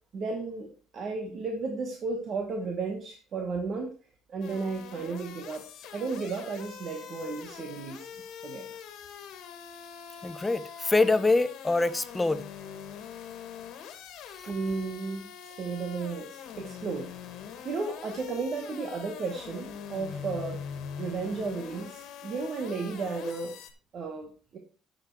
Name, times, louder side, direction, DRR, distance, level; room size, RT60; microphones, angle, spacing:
voice 1, 0.1-0.7 0.9-3.9 4.3-5.6 5.9-8.1 8.4-8.7 14.5-17.1 17.6-20.6 21.0-23.5 23.9-24.6, right 4 dB, 40° right, 1.3 m, -34 dB
sound 1, 4.4-23.7, left 8 dB, 65° left, 1.7 m, -43 dB
voice 2, 10.2-12.4 14.4-14.5, left 3 dB, 10° left, 0.5 m, -25 dB
9.8 x 6.8 x 4.6 m
cardioid pair, 165°, 0 cm